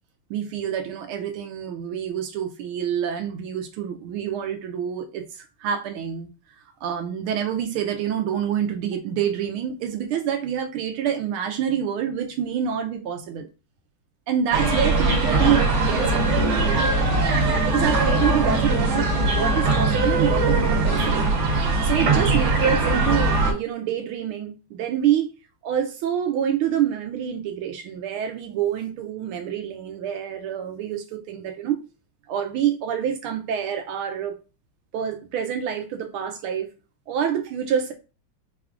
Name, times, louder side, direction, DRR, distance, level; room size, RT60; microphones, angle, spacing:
voice 1, 0.3-6.3 6.8-13.5 14.3-17.0 17.6-21.3 21.8-25.3 25.6-31.8 32.3-34.3 34.9-36.7 37.1-37.9, right 9 dB, 85° right, 1.5 m, -27 dB
sound 1, 14.5-23.5, right 2 dB, 70° right, 1.7 m, -21 dB
5.3 x 2.4 x 3.4 m
omnidirectional pair, 2.3 m